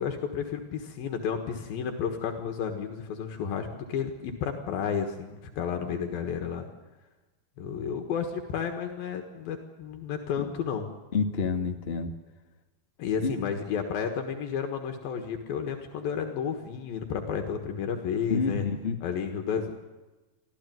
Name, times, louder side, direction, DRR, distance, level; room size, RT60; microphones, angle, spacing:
voice 1, 0.0-6.7 7.6-10.9 13.0-18.7 19.0-19.7, left 7 dB, 75° left, 4 dB, 3.4 m, -32 dB
voice 2, 11.1-12.1 13.2-13.4 18.3-19.0, left 5 dB, 35° left, 5 dB, 0.9 m, -28 dB
25.0 x 15.5 x 9.4 m, 1.2 s
omnidirectional pair, 4.2 m